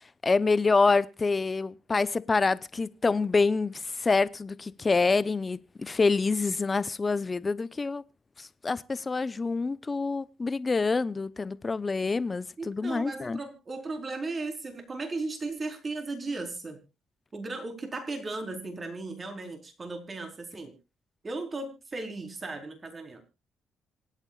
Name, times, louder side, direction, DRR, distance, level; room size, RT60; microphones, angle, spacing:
voice 1, 0.2-8.0 8.4-13.4, left 4 dB, 30° left, 0.9 m, -26 dB
voice 2, 12.6-16.8 17.3-20.7 21.2-23.2, right 3 dB, 35° right, 4.6 m, -36 dB
26.5 x 8.9 x 2.5 m
cardioid pair, 90°, 0 cm